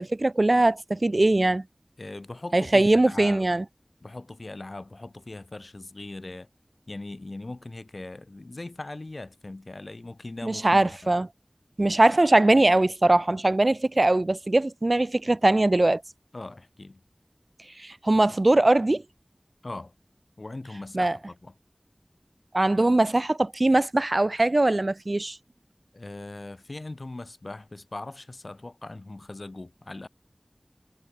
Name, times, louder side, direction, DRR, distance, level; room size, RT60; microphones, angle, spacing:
voice 1, 0.0-1.6 2.5-3.6 10.4-11.3 11.8-16.0 17.8-19.0 20.9-21.2 22.5-25.4, right 2 dB, 60° right, 0.7 m, -21 dB
voice 2, 2.0-3.5 4.0-6.5 6.9-11.1 16.3-17.0 19.6-19.9 20.4-21.5 25.9-30.1, left 2 dB, 75° left, 1.6 m, -40 dB
wide cardioid pair, 45°, 0 cm